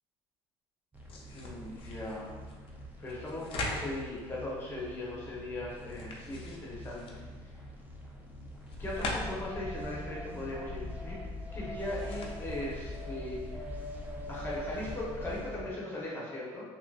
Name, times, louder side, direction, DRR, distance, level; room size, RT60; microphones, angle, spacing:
sound 1, 0.9-15.4, left 2 dB, 55° left, 0.5 m, -45 dB
sound 2, 0.9-15.7, equal, 15° right, 0.6 m, -46 dB
voice 1, 1.3-2.3 3.0-7.2 8.8-11.2 11.5-13.6 14.3-16.6, left 1 dB, 20° left, -5 dB, 1.0 m, -39 dB
Purr, 8.7-15.7, left 3 dB, 80° right, 0.9 m, -43 dB
3.0 x 2.8 x 2.5 m, 1.4 s
cardioid pair, 100°, 11 cm